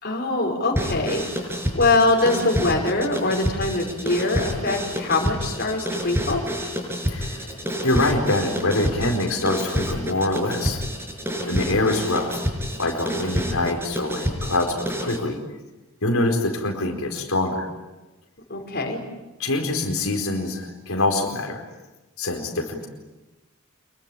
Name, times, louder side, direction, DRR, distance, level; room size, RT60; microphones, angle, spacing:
voice 1, 0.0-1.2 1.5-6.4 18.5-19.0, left 2 dB, 50° left, 1 dB, 5.3 m, -23 dB
sound 1, 0.7-15.2, equal, 10° right, 6.1 m, -28 dB
voice 2, 7.1-7.5 7.8-10.8 11.5-12.4 12.8-15.4 16.0-17.7 19.4-21.6 22.2-22.9, left 2 dB, 80° left, 2 dB, 4.6 m, -24 dB
27.0 x 22.0 x 9.1 m, 1.1 s
head